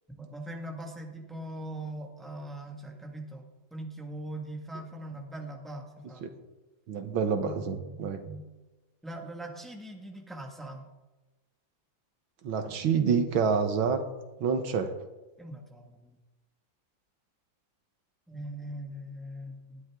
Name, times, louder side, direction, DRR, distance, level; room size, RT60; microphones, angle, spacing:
voice 1, 0.1-6.4 7.4-8.4 9.0-10.9 15.4-16.2 18.3-19.8, right 1 dB, ahead, 1 dB, 1.7 m, -41 dB
voice 2, 6.9-8.2 12.4-14.0 14.4-15.0, right 6 dB, 85° right, 7 dB, 2.0 m, -27 dB
19.0 x 12.0 x 3.7 m, 1.1 s
omnidirectional pair, 2.1 m